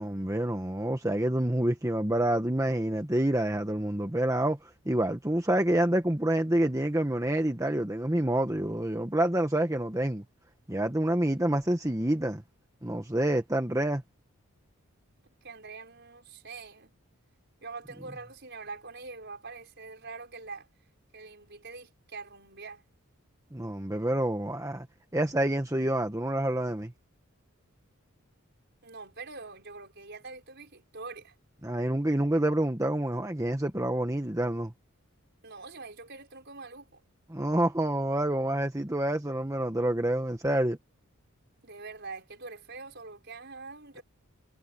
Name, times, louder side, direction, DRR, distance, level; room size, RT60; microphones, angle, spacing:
voice 1, 0.0-10.2 10.7-12.4 12.8-14.0 23.5-24.9 25.1-26.9 31.6-34.7 37.3-40.8, right 1 dB, 15° right, 1.1 m, -27 dB
voice 2, 15.4-16.9 17.6-20.7 21.1-22.8 28.8-31.3 35.4-37.0 41.6-44.0, right 4 dB, 50° right, 6.1 m, -44 dB
head